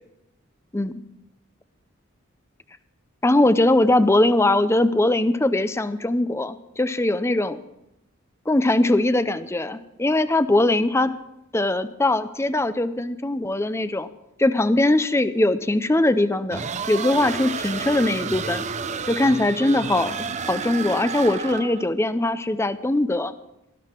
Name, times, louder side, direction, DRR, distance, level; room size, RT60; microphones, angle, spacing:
voice 1, 3.2-7.6 8.5-11.1 11.5-14.1 14.4-18.6 19.1-23.3, left 1 dB, 10° left, 13 dB, 0.5 m, -21 dB
sound 1, 16.5-21.9, right 5 dB, 35° right, 0.6 m, -30 dB
18.5 x 13.0 x 4.5 m, 0.89 s
head